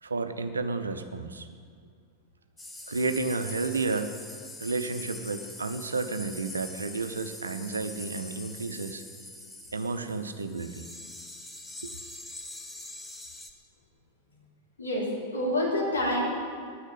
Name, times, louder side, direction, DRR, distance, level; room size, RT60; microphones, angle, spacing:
voice 1, 0.0-1.5 2.9-4.1 4.6-9.0 9.7-10.9 11.8-12.0, right 3 dB, 75° right, 9 dB, 0.8 m, -31 dB
sound 1, 2.6-13.5, left 2 dB, 10° left, 1.1 m, -43 dB
voice 2, 14.8-16.6, left 1 dB, 75° left, -5 dB, 3.5 m, -28 dB
9.9 x 9.7 x 8.2 m, 2.1 s
figure-of-eight pair, 90°, 0 cm